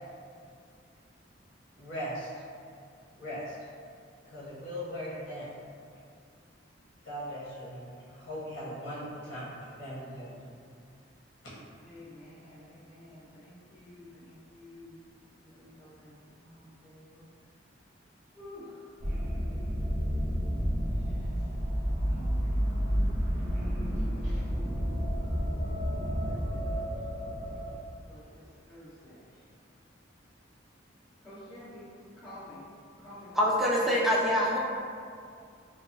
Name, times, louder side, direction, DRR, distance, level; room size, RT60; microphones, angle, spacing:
voice 1, 1.8-2.5 3.1-3.5 4.3-5.5 7.0-10.4, equal, 65° left, -9 dB, 1.1 m, -39 dB
voice 2, 11.8-14.9 15.3-17.2 18.3-18.8 20.9-21.5 22.0-24.5 25.5-26.9 28.0-29.4 31.2-31.8 32.2-32.6 33.0-33.4, left 1 dB, 15° left, -21 dB, 1.2 m, -51 dB
sound 1, 19.0-27.7, equal, 40° right, 0.6 m, -30 dB
voice 3, 33.3-34.6, equal, ahead, -5 dB, 0.3 m, -25 dB
3.4 x 2.1 x 2.7 m, 2.3 s
head